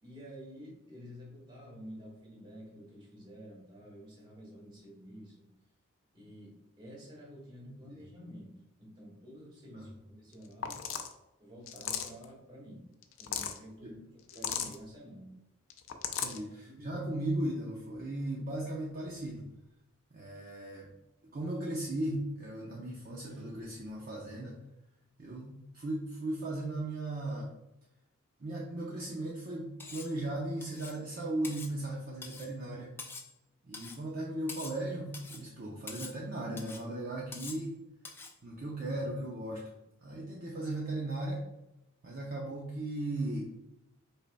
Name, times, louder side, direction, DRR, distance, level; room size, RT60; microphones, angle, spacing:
voice 1, 0.0-5.5 6.1-8.5 8.8-10.8 11.4-12.8 13.2-15.3 16.2-17.0, equal, 25° right, -3 dB, 1.7 m, -50 dB
voice 2, 7.7-8.0 9.7-9.9 13.8-13.9 16.2-19.5 20.1-20.9 21.3-24.6 25.2-27.5 28.4-32.9 33.7-37.8 38.4-39.6 40.0-41.4 42.0-43.5, right 1 dB, 45° right, -3 dB, 0.7 m, -37 dB
sound 1, 10.3-10.4 10.6-11.1 11.7-12.2 13.0-13.6 14.3-14.8 15.7-16.4, left 8 dB, 65° left, 0.5 m, -36 dB
Vehicle horn car horn honking, 14.0-15.5 16.0-16.2 16.5-16.6 17.0-17.1 17.4-17.8 18.4-20.2 20.6-20.7 20.9-21.0 21.4-21.5 21.9-22.0 22.3-24.3 25.5-25.9, left 1 dB, 70° right, 1.7 m, -59 dB
Cutlery silverware, 29.8-30.2 30.6-31.0 31.4-31.7 32.2-32.5 33.0-33.3 33.7-34.0 34.5-34.8 35.1-35.5 35.9-36.2 36.6-36.8 37.3-37.7 38.0-38.4, left 3 dB, 10° left, 0.4 m, -45 dB
5.6 x 4.0 x 2.2 m, 0.92 s
head